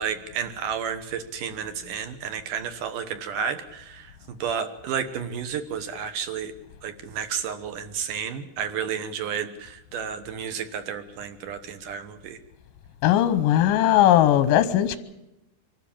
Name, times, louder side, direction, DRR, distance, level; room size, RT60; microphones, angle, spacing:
voice 1, 0.0-6.5 6.8-12.4, right 7 dB, 65° right, 2.3 m, -31 dB
voice 2, 13.0-15.0, left 12 dB, 75° left, 2.1 m, -19 dB
24.5 x 13.0 x 8.7 m
omnidirectional pair, 4.9 m